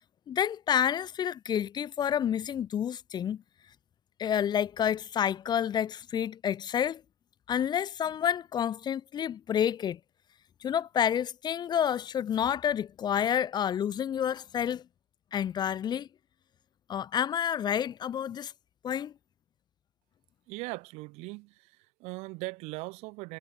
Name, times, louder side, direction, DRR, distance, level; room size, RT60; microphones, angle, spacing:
voice 1, 0.3-3.4 4.2-7.0 7.5-10.0 10.6-14.8 15.3-16.1 16.9-18.5 18.8-19.1, left 9 dB, 35° left, 0.5 m, -29 dB
voice 2, 20.5-23.4, right 25 dB, 55° right, 0.8 m, -40 dB
figure-of-eight pair, 60°, 13 cm